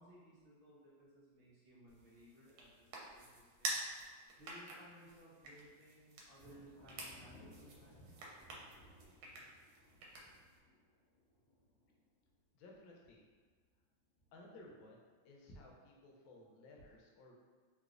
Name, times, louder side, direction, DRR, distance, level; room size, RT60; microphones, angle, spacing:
voice 1, 0.0-3.8 4.4-8.2, equal, 65° right, -9 dB, 0.5 m, -61 dB
sound 1, 1.9-10.6, right 2 dB, 85° right, 1.5 m, -48 dB
Thunder, 6.3-12.8 13.1-13.7 14.2-15.0, left 1 dB, 50° left, 0.6 m, -63 dB
voice 2, 12.5-13.3 14.3-17.3, left 1 dB, 80° left, -1 dB, 1.3 m, -58 dB
3.2 x 3.0 x 2.4 m, 1.5 s
omnidirectional pair, 2.2 m